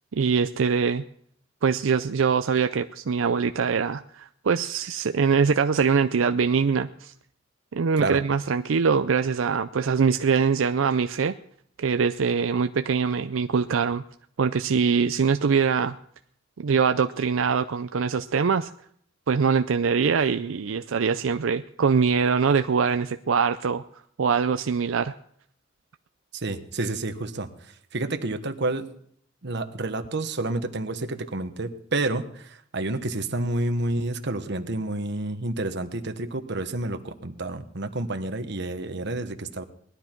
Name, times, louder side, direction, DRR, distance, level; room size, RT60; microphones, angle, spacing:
voice 1, 0.1-1.0 1.6-7.1 7.7-11.3 11.8-14.0 14.4-16.0 16.6-18.7 19.3-23.8 24.2-25.1, right 6 dB, 90° right, 9 dB, 0.5 m, -23 dB
voice 2, 26.3-27.5 27.9-28.9 29.4-39.6, right 2 dB, 60° right, 7 dB, 1.3 m, -29 dB
19.5 x 12.0 x 4.5 m, 0.65 s
head